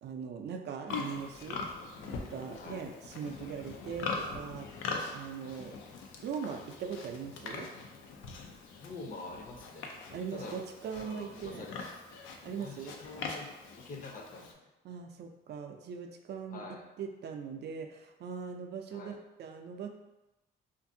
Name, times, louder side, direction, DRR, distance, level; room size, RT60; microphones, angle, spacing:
voice 1, 0.0-1.6 2.1-4.7 5.1-5.7 6.2-7.7 10.1-11.6 12.4-13.0 14.8-16.6 17.0-19.9, right 6 dB, 60° right, 4 dB, 0.4 m, -40 dB
Livestock farm animals working animals, 0.9-14.5, left 4 dB, 90° left, 0.4 m, -42 dB
voice 2, 8.8-9.9 10.3-10.6 10.9-11.9 12.6-13.5 13.8-14.7 16.5-16.9 18.9-19.2, left 3 dB, 45° left, 1 dB, 0.6 m, -46 dB
2.6 x 2.5 x 2.6 m, 1.0 s
cardioid pair, 90°, 20 cm